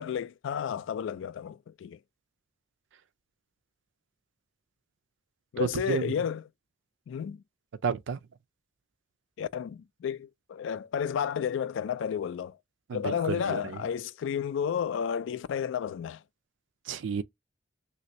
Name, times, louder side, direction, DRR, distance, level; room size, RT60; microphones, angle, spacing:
voice 1, 0.0-2.0 5.5-6.4 7.1-7.4 9.4-12.6 12.9-16.2, left 8 dB, 70° left, 0.3 m, -32 dB
voice 2, 5.6-6.1 7.8-8.2 12.9-13.8 16.9-17.2, right 5 dB, 65° right, 0.4 m, -31 dB
3.2 x 2.7 x 2.9 m
head